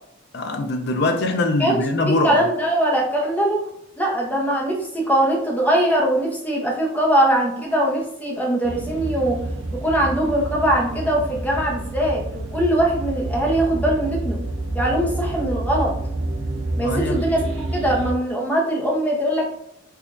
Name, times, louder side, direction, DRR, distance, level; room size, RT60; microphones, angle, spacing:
voice 1, 0.3-2.4 16.8-17.2, left 2 dB, 55° left, 0.5 m, -22 dB
voice 2, 2.1-3.6 4.0-9.4 9.8-14.4 14.7-15.9 16.8-19.5, right 1 dB, 10° left, 0.7 m, -21 dB
sound 1, 8.6-18.1, right 2 dB, 70° right, 0.5 m, -28 dB
4.7 x 2.4 x 2.5 m
head